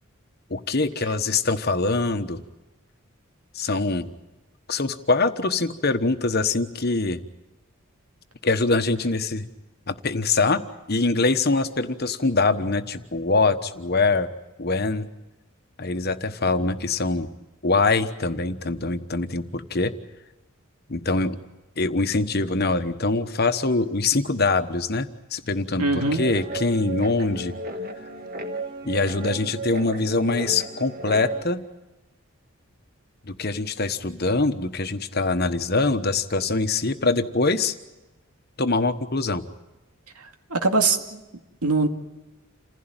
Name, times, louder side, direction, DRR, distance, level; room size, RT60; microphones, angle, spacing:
voice 1, 0.5-2.4 3.5-4.1 4.7-7.2 8.4-9.5 9.9-10.6 10.9-14.3 14.6-15.1 15.8-17.3 17.6-19.9 20.9-21.4 21.8-27.5 28.8-31.6 33.3-37.7 38.6-39.4, left 3 dB, 45° left, 9 dB, 1.2 m, -23 dB
voice 2, 25.8-26.2 40.5-41.2 41.6-41.9, right 3 dB, 90° right, 5 dB, 2.4 m, -21 dB
Guitar, 26.0-31.4, right 2 dB, 40° right, 1.7 m, -34 dB
28.5 x 16.0 x 9.0 m, 1.1 s
head